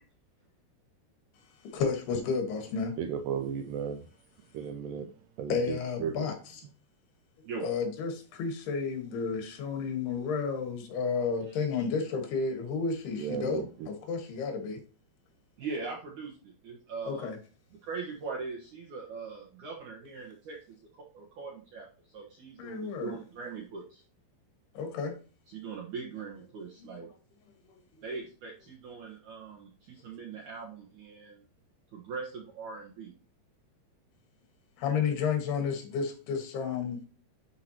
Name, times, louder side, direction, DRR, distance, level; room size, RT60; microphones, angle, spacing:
voice 1, 1.7-3.0 5.5-6.6 7.6-14.8 17.1-17.4 22.6-23.2 24.8-25.1 26.8-26.9 27.7-27.8 34.8-37.1, left 5 dB, 80° left, 3.6 m, -32 dB
voice 2, 3.0-4.1 4.5-5.1 5.4-6.2 13.1-13.9, right 7 dB, 90° right, 1.9 m, -35 dB
voice 3, 15.6-17.3 17.8-24.0 25.5-27.1 28.0-31.4 31.9-33.1 35.1-35.2, right 4 dB, 60° right, 2.3 m, -41 dB
11.5 x 4.8 x 2.9 m
omnidirectional pair, 4.6 m